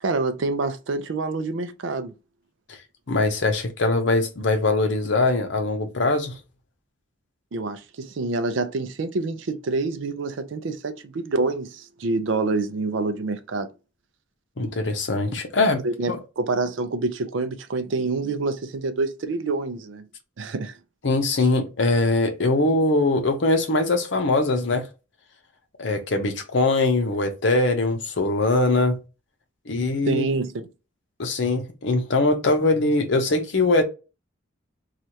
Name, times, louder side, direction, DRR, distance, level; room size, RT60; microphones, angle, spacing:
voice 1, 0.0-2.1 7.5-13.7 15.8-20.1 20.4-20.7 30.1-30.6, right 3 dB, 70° right, 0.4 m, -27 dB
voice 2, 3.1-6.3 14.6-15.8 16.1-16.2 21.0-24.9 25.8-29.0 29.7-30.2 31.2-33.8, left 2 dB, 65° left, 0.7 m, -22 dB
3.1 x 2.4 x 2.7 m
head